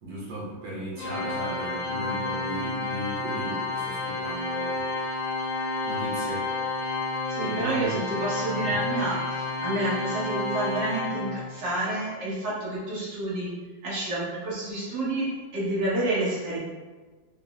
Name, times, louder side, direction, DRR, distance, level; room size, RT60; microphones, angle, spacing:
voice 1, 0.0-4.9 5.4-6.5 7.4-8.1 8.6-8.9, right 1 dB, 70° right, -6 dB, 1.5 m, -36 dB
Organ, 1.0-11.8, left 2 dB, 85° left, 1.3 m, -30 dB
voice 2, 7.3-13.5 13.8-15.3 15.5-16.6, right 2 dB, 90° right, -8 dB, 2.0 m, -29 dB
5.3 x 2.0 x 3.5 m, 1.3 s
omnidirectional pair, 1.9 m